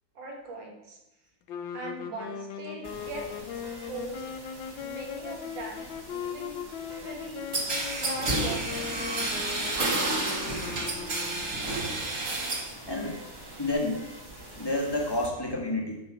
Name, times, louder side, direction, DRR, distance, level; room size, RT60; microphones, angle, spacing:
voice 1, 0.2-1.0 1.7-3.6 3.9-4.3 4.8-6.6 6.9-7.5 7.8-9.4, right 2 dB, 75° right, 0 dB, 2.3 m, -41 dB
sound 1, 1.5-11.9, left 7 dB, 85° left, 1.5 m, -39 dB
sound 2, 2.8-15.3, right 1 dB, 15° right, 1.0 m, -47 dB
sound 3, 7.5-12.7 13.1-13.7, right 2 dB, 45° right, 1.8 m, -30 dB
voice 2, 12.9-13.2 13.6-14.0 14.6-16.0, left 2 dB, 15° left, -2 dB, 1.3 m, -29 dB
11.0 x 5.7 x 4.7 m, 0.94 s
omnidirectional pair, 2.1 m